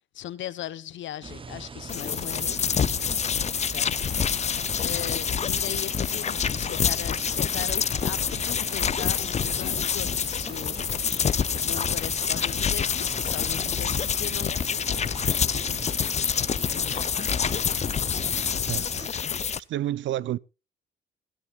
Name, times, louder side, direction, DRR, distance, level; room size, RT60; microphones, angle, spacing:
voice 1, 0.1-2.6 3.7-3.9 4.8-11.1 11.5-15.0 15.3-16.0 16.7-17.1, left 12 dB, 70° left, 1.0 m, -38 dB
sound 1, 1.2-19.1, right 4 dB, 25° right, 0.8 m, -41 dB
sound 2, 1.9-19.6, left 7 dB, 35° left, 0.6 m, -27 dB
voice 2, 18.7-19.3 19.7-20.4, right 13 dB, 70° right, 0.6 m, -30 dB
21.5 x 12.5 x 2.4 m
cardioid pair, 90°, 20 cm